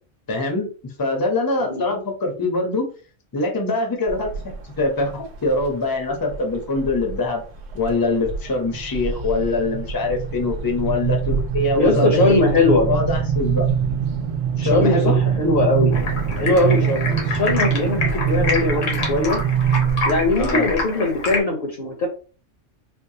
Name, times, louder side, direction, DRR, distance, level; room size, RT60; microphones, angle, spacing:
voice 1, 0.3-2.9 3.3-4.3 4.8-7.4 7.7-12.4 12.8-13.6 14.6-15.2 20.3-20.7, left 2 dB, 25° left, 2 dB, 0.6 m, -23 dB
sound 1, 4.1-4.6 5.1-5.7 6.3-7.2 7.6-7.9 8.2-20.8, right 7 dB, 75° right, 0.9 m, -23 dB
voice 2, 11.8-12.9 14.6-15.9 16.4-19.4 20.0-22.1, left 2 dB, 50° left, 2 dB, 0.9 m, -20 dB
Stream, 15.9-21.4, left 3 dB, 75° left, 1.4 m, -27 dB
4.4 x 2.2 x 2.7 m, 0.38 s
omnidirectional pair, 1.3 m